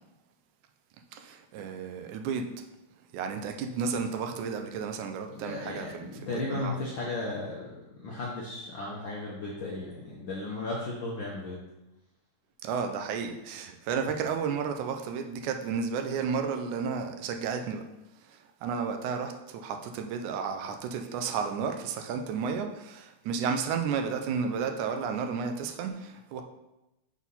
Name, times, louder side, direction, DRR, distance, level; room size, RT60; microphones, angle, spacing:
voice 1, 1.1-2.5 3.1-6.7 12.6-17.8 18.2-26.4, right 6 dB, 80° right, 5 dB, 2.0 m, -32 dB
voice 2, 5.2-11.6, left 2 dB, 65° left, -5 dB, 1.2 m, -35 dB
6.2 x 4.2 x 5.5 m, 0.94 s
omnidirectional pair, 3.5 m